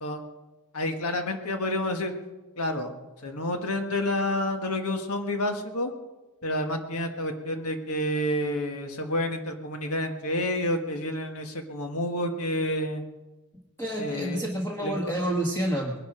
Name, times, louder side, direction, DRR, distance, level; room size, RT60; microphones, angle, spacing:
voice 1, 0.7-2.1 2.6-2.9 3.2-5.9 6.4-13.0 14.0-14.4 14.8-15.2, left 1 dB, 80° left, 5 dB, 1.7 m, -29 dB
voice 2, 13.8-15.9, right 1 dB, 10° left, -2 dB, 1.6 m, -28 dB
21.0 x 11.0 x 5.0 m, 1.1 s
head